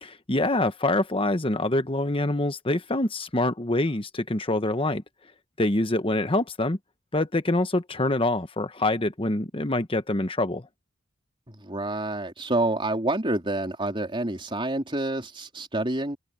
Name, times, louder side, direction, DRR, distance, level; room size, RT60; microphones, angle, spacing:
voice 1, 0.0-5.0 5.6-6.8 7.1-10.7, left 2 dB, 25° left, 1.2 m, -25 dB
voice 2, 11.5-16.2, right 2 dB, 25° right, 3.9 m, -28 dB
head